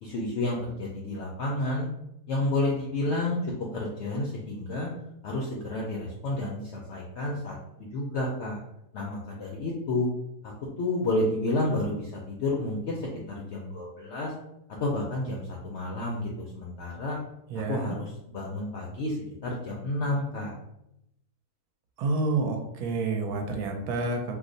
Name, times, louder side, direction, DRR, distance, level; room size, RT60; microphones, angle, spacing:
voice 1, 0.0-1.9 2.3-4.9 5.2-8.6 8.9-10.1 10.8-14.3 14.8-17.2 17.7-19.2 19.4-20.5, left 2 dB, 75° left, -2 dB, 0.6 m, -30 dB
voice 2, 17.5-18.0 22.0-24.4, right 3 dB, 75° right, 3 dB, 1.0 m, -29 dB
2.8 x 2.0 x 3.8 m, 0.82 s
omnidirectional pair, 1.7 m